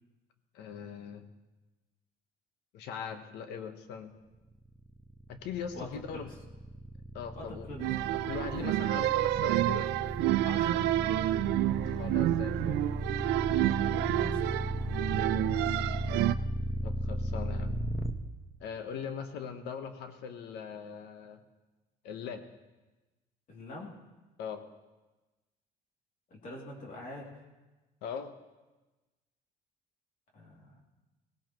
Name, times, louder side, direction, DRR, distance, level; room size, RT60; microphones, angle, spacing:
voice 1, 0.5-1.3 2.7-4.1 5.3-6.3 7.1-7.7 8.2-9.9 11.8-12.8 15.2-15.5 16.8-17.8 18.6-21.4 22.0-22.4 24.4-24.6 28.0-28.3, left 7 dB, 85° left, 8 dB, 1.2 m, -40 dB
sound 1, 4.8-18.1, equal, ahead, 1.0 m, -35 dB
voice 2, 5.7-6.3 7.3-7.9 8.4-8.7 10.4-10.8 13.8-14.5 23.5-23.9 26.3-27.3 30.3-30.8, left 1 dB, 55° left, -2 dB, 2.9 m, -44 dB
sound 2, 7.8-16.3, right 15 dB, 85° right, 0.4 m, -29 dB
18.0 x 17.0 x 3.1 m, 1.1 s
cardioid pair, 110°, 17 cm